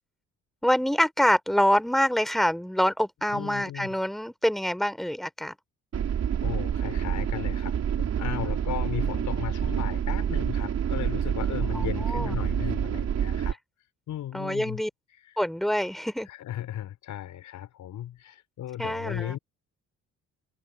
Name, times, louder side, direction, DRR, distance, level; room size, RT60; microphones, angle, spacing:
voice 1, 0.6-5.5 11.7-12.4 14.3-14.9 15.4-16.3 18.8-19.4, equal, ahead, 3.3 m, -26 dB
voice 2, 3.3-3.9 6.4-13.6 14.1-14.8 16.3-19.4, left 12 dB, 80° left, 5.4 m, -36 dB
sound 1, 5.9-13.5, right 8 dB, 60° right, 4.4 m, -27 dB
open air
cardioid pair, 90°, 30 cm